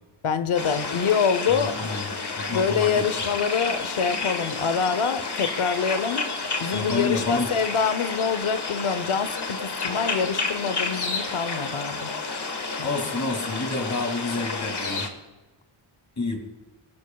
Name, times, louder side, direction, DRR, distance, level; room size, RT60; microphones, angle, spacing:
voice 1, 0.2-1.9 2.5-6.2 6.6-12.1 12.8-12.9, left 6 dB, 75° left, 11 dB, 0.9 m, -25 dB
sound 1, 0.6-15.1, left 4 dB, 55° left, 1.6 m, -30 dB
voice 2, 1.5-2.1 2.4-3.0 6.7-7.5 12.8-15.1 16.2-16.4, left 3 dB, 35° left, 3 dB, 2.5 m, -29 dB
23.5 x 13.0 x 2.3 m, 1.1 s
wide cardioid pair, 120°, 50 cm